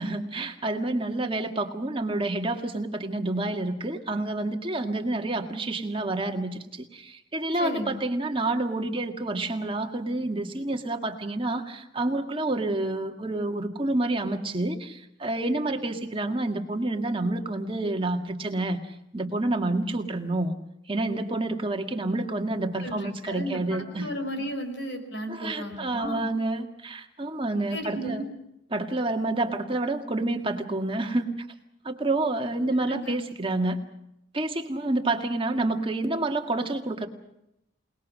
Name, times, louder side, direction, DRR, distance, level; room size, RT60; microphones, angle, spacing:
voice 1, 0.0-18.8 19.1-20.5 20.9-24.1 25.3-28.3 28.7-31.3 31.8-33.8 34.3-37.1, right 2 dB, 25° right, 4 dB, 1.8 m, -28 dB
voice 2, 7.6-8.0 22.8-26.3 27.7-28.3 32.8-33.1, equal, 60° left, 6 dB, 5.4 m, -34 dB
27.5 x 20.0 x 6.3 m, 0.81 s
head